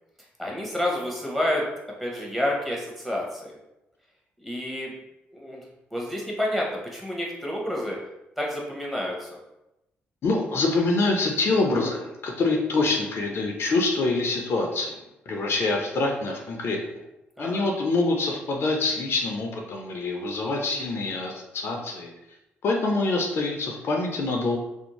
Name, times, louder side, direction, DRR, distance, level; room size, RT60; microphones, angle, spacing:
voice 1, 0.4-1.6 2.0-3.5 4.4-4.9 5.3-5.6 5.9-8.0 8.4-9.3 17.4-17.7, left 1 dB, 5° right, -3 dB, 0.9 m, -29 dB
voice 2, 10.2-15.0 15.3-16.8 17.4-22.1 22.6-24.6, left 3 dB, 60° left, 1 dB, 0.5 m, -25 dB
2.5 x 2.0 x 3.0 m, 0.92 s
supercardioid pair, 65°, 5 cm